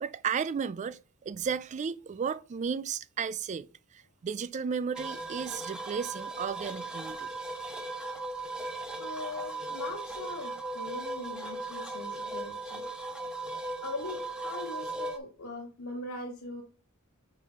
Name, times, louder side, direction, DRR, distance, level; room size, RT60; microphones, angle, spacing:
voice 1, 0.0-3.7 3.9-7.3, right 6 dB, 35° right, 0.3 m, -34 dB
sound 1, 4.9-15.2, right 2 dB, 5° right, 0.7 m, -38 dB
voice 2, 9.0-12.9 13.8-16.6, left 2 dB, 70° left, 1.3 m, -40 dB
4.9 x 4.7 x 5.5 m
head